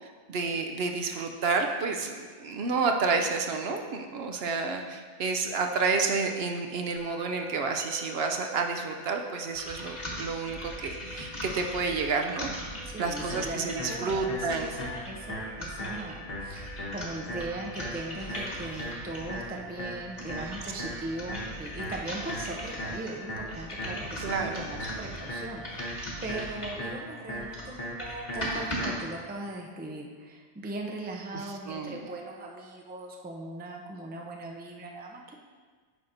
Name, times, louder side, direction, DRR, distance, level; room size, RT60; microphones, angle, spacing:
voice 1, 0.0-12.5 13.0-14.7 24.2-24.7 31.3-32.1, right 4 dB, 70° right, 4 dB, 0.8 m, -30 dB
Musical instrument, 7.0-25.9, left 1 dB, 70° left, 2.7 m, -52 dB
sound 1, 9.5-19.4 19.9-26.9 27.3-28.9, equal, 40° left, 1.7 m, -40 dB
voice 2, 12.8-35.4, right 2 dB, 15° right, 0 dB, 0.4 m, -39 dB
sound 2, 13.3-29.3, left 1 dB, 55° left, 1.4 m, -39 dB
9.7 x 5.7 x 2.6 m, 1.5 s
omnidirectional pair, 1.2 m